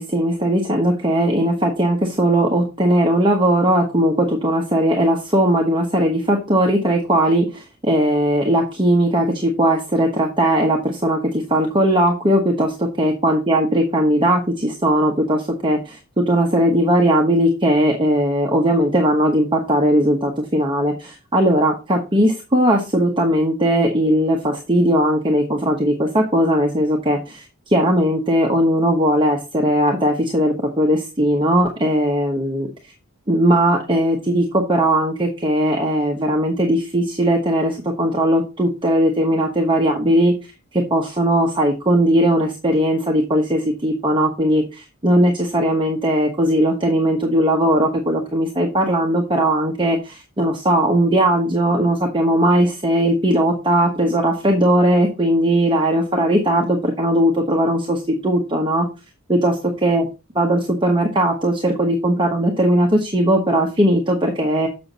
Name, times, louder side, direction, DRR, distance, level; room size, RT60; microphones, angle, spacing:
voice 1, 0.0-32.7 33.3-40.3 40.7-58.9 59.3-59.5 59.8-60.0 60.3-64.7, right 1 dB, 20° right, 1 dB, 1.1 m, -18 dB
7.4 x 6.1 x 4.0 m, 0.29 s
head